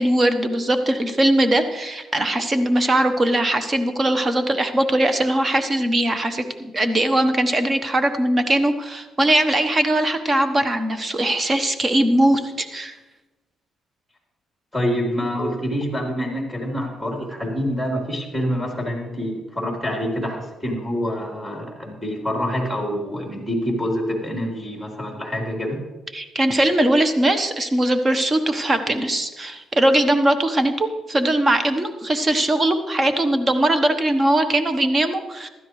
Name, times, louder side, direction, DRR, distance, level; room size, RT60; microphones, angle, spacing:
voice 1, 0.0-12.9 26.1-35.5, right 1 dB, 30° right, 8 dB, 1.1 m, -20 dB
voice 2, 14.7-25.8, equal, ahead, -1 dB, 4.0 m, -26 dB
15.5 x 12.5 x 3.2 m, 1.1 s
cardioid pair, 90°, 0 cm